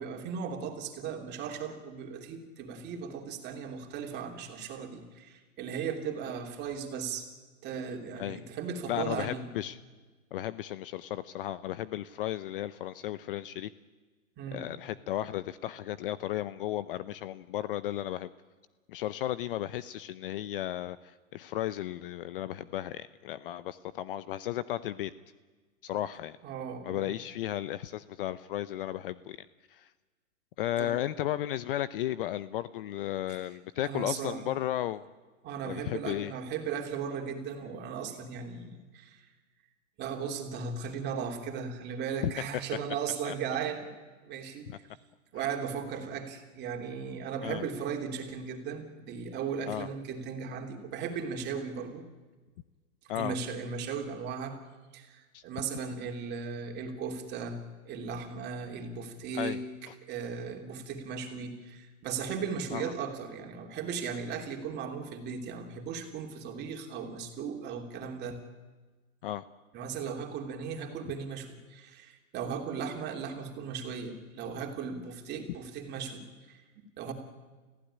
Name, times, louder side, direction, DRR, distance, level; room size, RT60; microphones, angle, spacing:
voice 1, 0.0-7.3 7.6-9.5 14.4-14.6 26.4-27.1 30.8-30.9 33.3-33.4 33.8-34.4 35.4-39.2 40.0-43.9 44.2-44.9 45.3-52.0 53.1-54.6 54.9-57.6 57.8-59.6 60.1-68.4 69.7-77.1, right 6 dB, 25° right, 3 dB, 3.0 m, -37 dB
voice 2, 8.9-9.8 10.3-13.7 14.5-18.3 18.9-25.1 25.8-26.4 26.8-29.4 29.7-29.9 30.6-35.0 35.6-36.3 42.2-42.3 43.2-43.3 44.7-44.8 45.4-45.5 47.4-47.6 49.7-49.9 53.1-53.4 55.3-55.4 59.3-59.6 62.7-62.9 69.2-69.4, left 13 dB, 40° left, 16 dB, 0.7 m, -34 dB
29.5 x 15.5 x 10.0 m, 1.3 s
hypercardioid pair, 150°, 41 cm